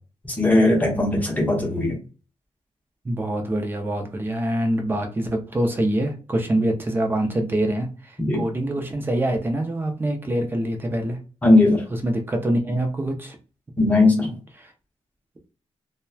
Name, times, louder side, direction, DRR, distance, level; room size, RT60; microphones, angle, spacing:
voice 1, 0.2-2.0 8.2-8.5 11.4-11.8 13.8-14.3, left 2 dB, 15° left, 0.8 m, -18 dB
voice 2, 3.0-7.9 8.3-11.2 12.0-13.4, right 1 dB, 20° right, 0.5 m, -25 dB
2.8 x 2.1 x 2.3 m
wide cardioid pair, 155°, 12 cm